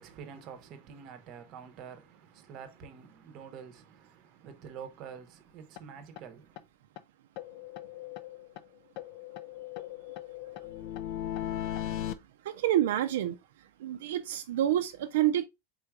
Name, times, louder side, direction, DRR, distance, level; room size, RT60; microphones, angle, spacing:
voice 1, 0.0-6.6, right 7 dB, 30° right, 0.7 m, -47 dB
sound 1, 5.8-5.9 6.2-6.3 6.6-6.7 7.0-7.1 7.4-8.7 9.0-12.1, left 12 dB, 40° left, 0.3 m, -38 dB
voice 2, 12.4-13.4 13.8-15.4, right 12 dB, 65° right, 0.4 m, -28 dB
3.8 x 2.4 x 4.6 m
supercardioid pair, 175°, 0 cm